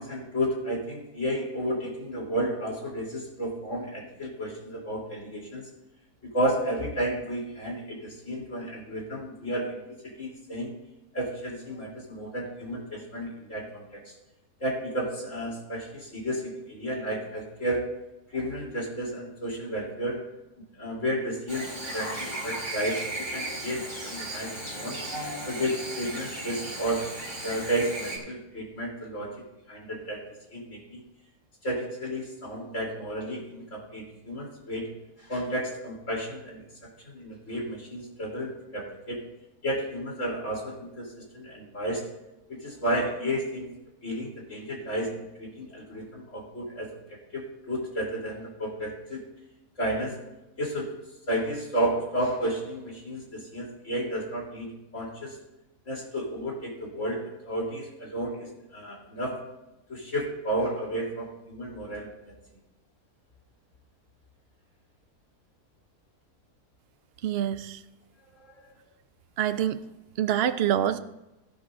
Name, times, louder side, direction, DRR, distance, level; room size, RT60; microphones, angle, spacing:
voice 1, 0.0-5.7 6.2-9.7 10.0-10.7 11.1-14.1 14.6-17.8 18.3-20.2 20.8-25.0 25.5-27.0 27.4-29.3 29.7-30.2 30.5-31.0 31.6-34.9 35.2-36.6 37.1-39.2 39.6-41.1 41.3-42.0 42.5-43.7 44.0-46.9 47.3-49.2 49.8-50.2 50.6-50.9 51.3-55.4 55.9-59.4 59.9-62.3 68.5-68.6, right 1 dB, 55° left, -4 dB, 3.7 m, -32 dB
Chirp tweet / Buzz, 21.5-28.2, right 1 dB, 35° right, 4.5 m, -36 dB
voice 2, 67.2-67.8 69.4-69.8 70.2-71.0, right 10 dB, 60° right, 12 dB, 0.6 m, -26 dB
17.5 x 10.5 x 2.6 m, 0.99 s
omnidirectional pair, 1.6 m